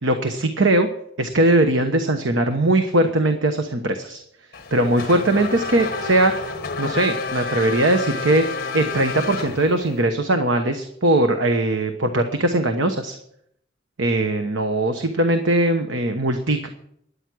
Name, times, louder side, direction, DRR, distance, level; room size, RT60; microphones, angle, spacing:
voice 1, 0.0-0.9 1.2-4.2 4.7-6.5 6.8-13.2 14.0-16.7, right 1 dB, 90° right, 6 dB, 1.1 m, -20 dB
Race car auto racing / Accelerating revving vroom, 4.5-10.0, left 4 dB, 50° left, 1.3 m, -30 dB
13.0 x 9.9 x 6.2 m, 0.74 s
head